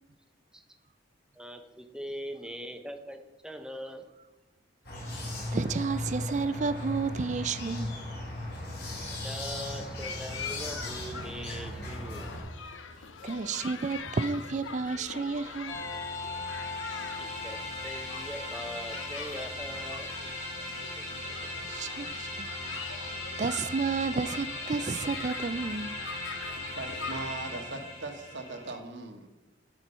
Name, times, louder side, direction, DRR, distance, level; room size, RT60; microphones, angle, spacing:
voice 1, 1.4-4.0 9.2-12.3 13.0-13.1 15.9-16.0 17.2-20.2 21.0-21.4, equal, 5° right, 0.7 m, -42 dB
sound 1, 4.8-12.4, left 1 dB, 55° left, 3.2 m, -37 dB
voice 2, 5.2-7.9 13.2-15.8 21.0-21.1 21.6-22.5 23.0-26.0, right 4 dB, 40° right, 0.4 m, -31 dB
sound 2, 10.0-27.3, left 6 dB, 85° left, 0.8 m, -43 dB
sound 3, 15.7-28.8, left 2 dB, 30° left, 2.9 m, -38 dB
voice 3, 26.7-29.3, right 2 dB, 70° right, 1.4 m, -39 dB
12.5 x 4.6 x 5.4 m
head